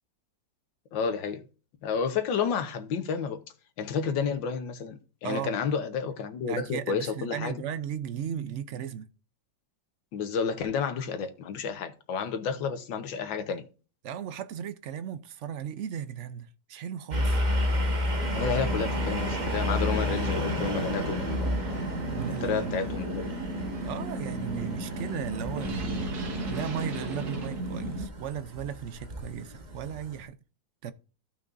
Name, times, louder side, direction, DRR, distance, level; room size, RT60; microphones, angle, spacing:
voice 1, 0.9-1.4 1.8-3.4 3.8-7.6 10.1-13.7 18.3-21.6 22.4-23.5, left 6 dB, 90° left, 1.7 m, -31 dB
voice 2, 5.2-5.6 6.5-9.1 14.0-17.4 22.1-22.8 23.8-26.2 26.5-30.4 30.8-30.9, right 9 dB, 75° right, 0.6 m, -36 dB
sound 1, 17.1-30.3, equal, 30° right, 1.1 m, -32 dB
sound 2, 18.2-28.1, right 1 dB, 60° right, 2.2 m, -35 dB
Guitar, 19.9-23.1, left 4 dB, 40° left, 0.6 m, -45 dB
14.0 x 5.7 x 2.5 m
omnidirectional pair, 2.0 m